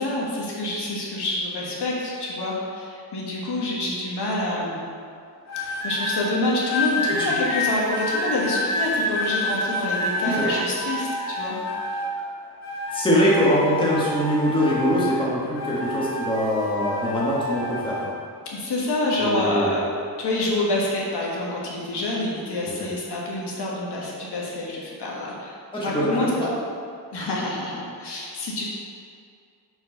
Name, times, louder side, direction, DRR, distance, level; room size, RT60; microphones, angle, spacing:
voice 1, 0.0-4.8 5.8-11.6 18.5-19.8 20.2-26.5 27.1-28.6, left 2 dB, 65° left, -5 dB, 1.6 m, -27 dB
sound 1, 5.5-6.2 6.7-12.2 12.6-15.2 15.5-18.1 18.8-19.1, left 1 dB, 40° left, 1.6 m, -28 dB
voice 2, 10.2-10.6 12.9-18.0 19.2-19.8 22.7-22.9 25.7-26.5 27.1-27.2, equal, 10° left, -7 dB, 1.4 m, -23 dB
6.9 x 4.6 x 5.2 m, 2.4 s
wide cardioid pair, 165°, 42 cm